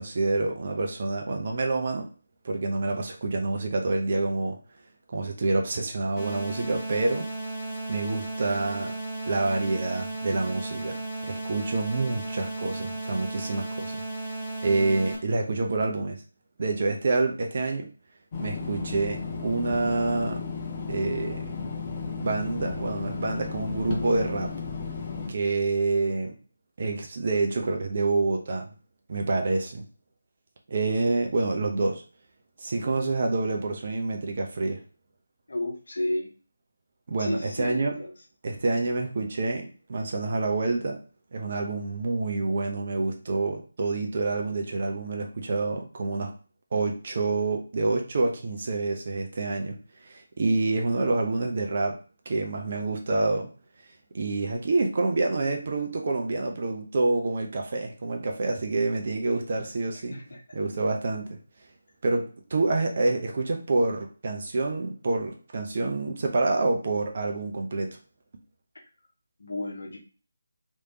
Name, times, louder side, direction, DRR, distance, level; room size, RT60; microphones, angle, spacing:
voice 1, 0.0-2.1 2.4-4.6 5.1-7.3 7.9-9.0 9.3-14.0 14.6-16.2 16.6-17.9 18.4-20.4 20.9-21.5 22.2-24.5 25.3-26.3 26.8-28.7 29.1-29.8 30.7-32.0 32.6-34.8 37.1-38.0 38.4-41.0 41.3-46.3 46.7-49.8 50.0-52.0 52.3-53.5 54.1-60.1 60.5-61.4 62.0-68.0, right 3 dB, 45° right, 3 dB, 0.7 m, -27 dB
sound 1, 6.2-15.2, right 2 dB, 15° left, 1.1 m, -35 dB
sound 2, 18.3-25.3, left 4 dB, 30° left, 0.7 m, -34 dB
voice 2, 35.5-36.3 37.2-38.1 60.1-60.4 69.4-70.0, left 1 dB, 65° left, 1 dB, 1.0 m, -32 dB
3.3 x 3.2 x 2.8 m, 0.37 s
figure-of-eight pair, 155°, 0 cm